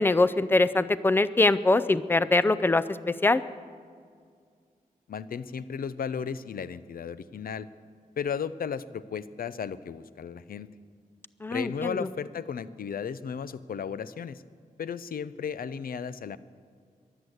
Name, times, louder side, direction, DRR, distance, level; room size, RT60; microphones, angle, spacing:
voice 1, 0.0-2.8 3.2-3.4 11.4-12.0, left 2 dB, 15° left, 15 dB, 0.4 m, -23 dB
voice 2, 5.1-7.7 8.2-10.7 11.5-14.4 14.8-16.4, left 7 dB, 85° left, 15 dB, 0.6 m, -34 dB
22.5 x 8.1 x 7.9 m, 2.1 s
wide cardioid pair, 165°, 15 cm